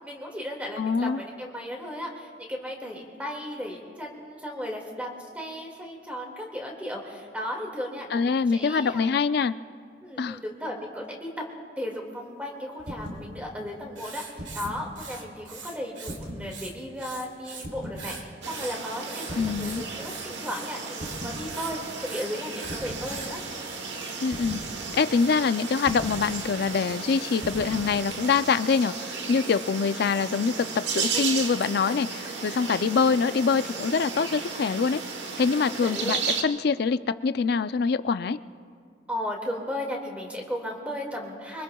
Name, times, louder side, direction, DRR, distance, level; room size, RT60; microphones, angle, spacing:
voice 1, 0.0-9.1 10.0-11.3 11.8-23.4 31.0-31.2 32.3-32.7 35.4-36.3 39.1-41.6, equal, 10° right, 0 dB, 2.0 m, -35 dB
voice 2, 0.8-1.2 8.1-9.5 10.2-10.4 19.4-19.8 24.2-24.6 24.9-35.0 35.4-38.4, left 5 dB, 60° left, 13 dB, 0.4 m, -25 dB
sound 1, 12.8-13.3 14.2-14.9 16.0-16.5 17.6-18.0 19.3-19.7 21.0-21.4 22.6-23.1 24.3-24.7 25.8-26.2 27.4-27.8, equal, 55° right, 4.1 m, -38 dB
Writing, 14.0-16.2 16.5-17.7 18.0-23.4, right 5 dB, 90° right, 1.7 m, -42 dB
sound 2, 18.4-36.4, right 5 dB, 75° right, 1.2 m, -34 dB
25.5 x 24.0 x 2.3 m, 2.2 s
head